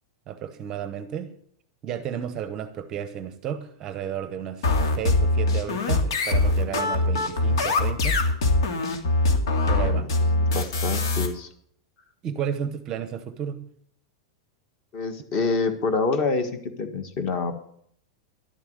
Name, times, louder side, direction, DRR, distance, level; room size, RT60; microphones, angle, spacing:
voice 1, 0.3-1.4 1.8-8.2 9.7-10.3 12.2-13.7, right 9 dB, 20° right, 11 dB, 0.7 m, -33 dB
sound 1, 4.6-11.3, left 2 dB, 80° left, 2.6 m, -22 dB
voice 2, 6.4-7.0 10.2-11.5 14.9-17.6, left 4 dB, 30° left, 9 dB, 1.6 m, -27 dB
12.0 x 7.2 x 9.3 m, 0.64 s
supercardioid pair, 175°, 2 cm